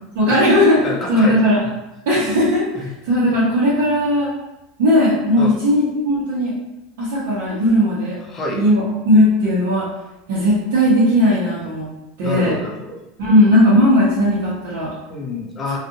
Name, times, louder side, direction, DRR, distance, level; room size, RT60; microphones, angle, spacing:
voice 1, 0.1-1.6 2.1-4.3 4.8-6.5 7.0-8.2 8.5-9.9 10.3-11.9 12.2-12.6 13.2-14.9, equal, 80° right, -10 dB, 1.0 m, -17 dB
voice 2, 0.8-1.4 2.7-2.9 5.4-5.5 8.3-8.6 12.2-13.0 15.1-15.8, left 2 dB, 15° left, -2 dB, 0.5 m, -27 dB
2.5 x 2.5 x 2.7 m, 0.95 s
supercardioid pair, 160°, 0 cm